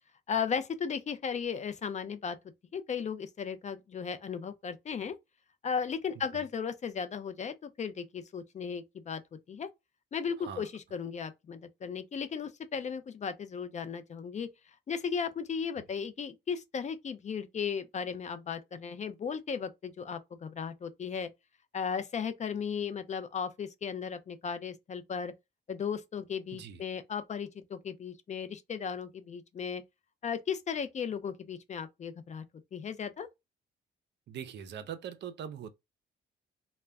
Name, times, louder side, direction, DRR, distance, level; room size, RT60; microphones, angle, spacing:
voice 1, 0.3-2.4 2.7-5.2 5.6-9.2 9.5-9.7 10.1-14.5 14.9-21.3 21.7-25.3 25.7-29.8 30.2-32.4 32.7-33.3, left 6 dB, 35° left, 0.4 m, -36 dB
voice 2, 10.4-10.7 26.5-26.8 34.3-35.7, right 8 dB, 60° right, 0.5 m, -42 dB
2.1 x 2.1 x 3.5 m
cardioid pair, 90°, 20 cm